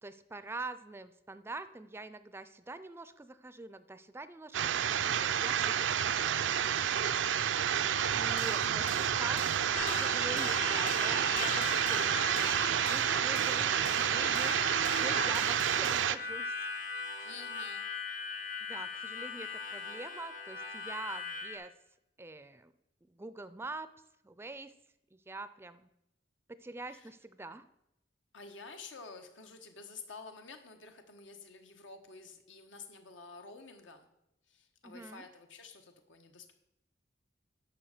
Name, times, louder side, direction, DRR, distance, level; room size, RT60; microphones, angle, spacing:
voice 1, 0.0-7.0 8.2-16.5 17.2-17.3 18.7-21.7 22.2-22.7 23.1-23.9 24.2-24.7 25.1-25.9 26.6-27.6 34.8-35.3, right 2 dB, 15° right, 13 dB, 0.4 m, -45 dB
sound 1, 4.5-16.2, right 9 dB, 80° right, 0.5 m, -29 dB
sound 2, 8.1-16.1, left 3 dB, 45° left, 1.1 m, -49 dB
voice 2, 8.6-9.0 17.2-17.9 26.9-27.1 28.3-34.1 34.5-36.5, left 4 dB, 90° left, 5 dB, 1.3 m, -50 dB
Harmonica, 9.7-21.6, left 4 dB, 60° left, 3.4 m, -40 dB
10.0 x 6.4 x 6.6 m, 0.84 s
head